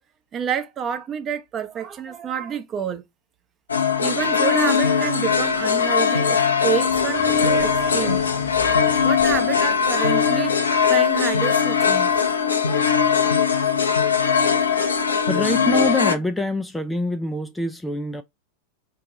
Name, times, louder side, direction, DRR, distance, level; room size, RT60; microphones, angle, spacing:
voice 1, 0.3-3.0 4.0-8.2 9.0-12.1, right 8 dB, 25° right, 0.8 m, -28 dB
sound 1, 3.7-16.1, left 6 dB, 75° left, 0.7 m, -20 dB
sound 2, 6.8-11.2, left 9 dB, 40° left, 1.0 m, -42 dB
voice 2, 15.2-18.2, left 2 dB, 5° left, 0.4 m, -25 dB
4.6 x 2.8 x 3.6 m
figure-of-eight pair, 90°, 0 cm